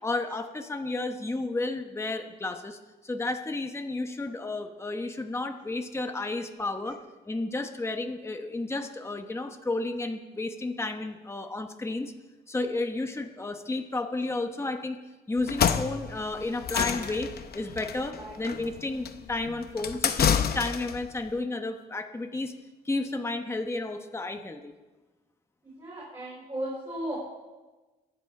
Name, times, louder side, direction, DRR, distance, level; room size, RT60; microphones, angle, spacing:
voice 1, 0.0-7.0 7.2-12.1 12.5-15.0 15.3-22.5 22.8-24.7, left 2 dB, 15° left, 5 dB, 1.0 m, -32 dB
sound 1, 15.4-21.0, left 8 dB, 60° left, 0.8 m, -28 dB
voice 2, 25.8-27.3, right 1 dB, 25° right, -6 dB, 5.1 m, -35 dB
23.0 x 8.3 x 4.9 m, 1.2 s
wide cardioid pair, 130°, 18 cm